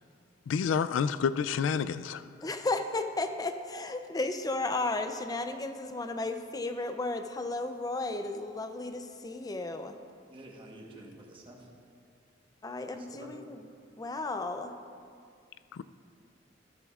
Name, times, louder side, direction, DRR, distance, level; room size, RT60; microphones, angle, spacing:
voice 1, 0.5-2.2 15.7-15.8, left 6 dB, 80° left, 0.3 m, -29 dB
voice 2, 2.4-9.9 12.6-13.7 14.0-14.7, left 2 dB, 20° left, 0.5 m, -34 dB
voice 3, 10.3-11.7 13.0-13.4, right 1 dB, 30° right, 1.2 m, -49 dB
13.5 x 12.0 x 2.4 m
head